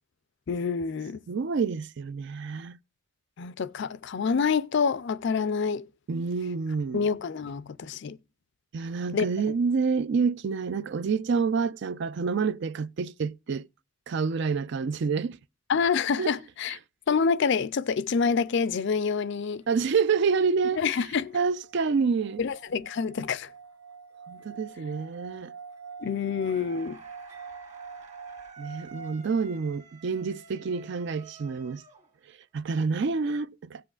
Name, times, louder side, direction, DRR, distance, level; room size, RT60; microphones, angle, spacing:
voice 1, 0.5-1.2 3.4-5.9 6.9-8.2 9.1-9.5 15.7-16.8 17.1-19.6 20.8-21.4 22.4-23.5 26.0-27.0, left 5 dB, 55° left, 0.4 m, -27 dB
voice 2, 1.3-2.8 6.1-7.1 8.7-13.7 14.1-15.4 16.2-16.3 19.7-20.8 21.3-22.4 24.3-25.5 28.6-31.8 32.5-33.8, right 5 dB, 55° right, 0.4 m, -28 dB
sound 1, 20.8-29.2, right 5 dB, 90° right, 1.2 m, -46 dB
sound 2, 26.4-32.5, right 4 dB, 30° right, 1.8 m, -52 dB
17.0 x 7.7 x 2.4 m
head